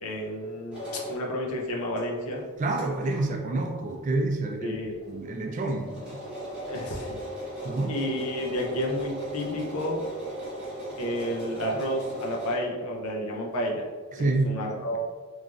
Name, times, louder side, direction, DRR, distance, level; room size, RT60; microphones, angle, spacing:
voice 1, 0.0-2.4 4.6-5.0 6.7-7.2 7.9-10.0 11.0-13.9 14.2-15.0, left 1 dB, 75° left, -1 dB, 0.6 m, -31 dB
sound 1, 0.7-1.2 2.0-2.1 2.4-2.5 2.8-2.9 3.1-3.2 3.9-4.0 4.2-4.3 4.6-4.7 5.0-12.6, equal, 5° right, 0.9 m, -37 dB
voice 2, 2.6-4.8 5.1-6.3 7.6-8.0 14.1-14.6, right 2 dB, 35° right, 3 dB, 0.3 m, -28 dB
3.1 x 2.4 x 2.4 m, 1.5 s
head